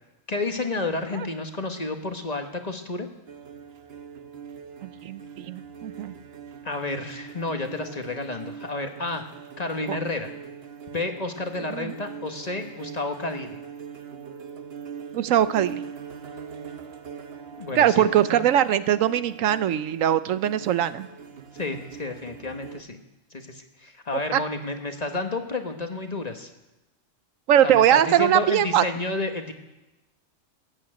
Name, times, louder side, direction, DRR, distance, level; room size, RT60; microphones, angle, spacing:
voice 1, 0.3-3.1 6.6-9.3 9.6-10.3 10.9-13.6 17.6-18.1 18.3-18.4 21.5-23.0 23.3-26.5 27.6-29.5, left 2 dB, 30° left, 6 dB, 1.2 m, -31 dB
sound 1, 3.3-22.8, right 7 dB, 55° right, 1.1 m, -42 dB
voice 2, 4.8-6.1 9.9-10.0 11.7-11.9 15.1-15.8 17.8-21.1 24.3-24.4 27.5-28.8, right 10 dB, 85° right, 14 dB, 1.1 m, -21 dB
14.5 x 8.9 x 8.8 m, 1.0 s
omnidirectional pair, 1.3 m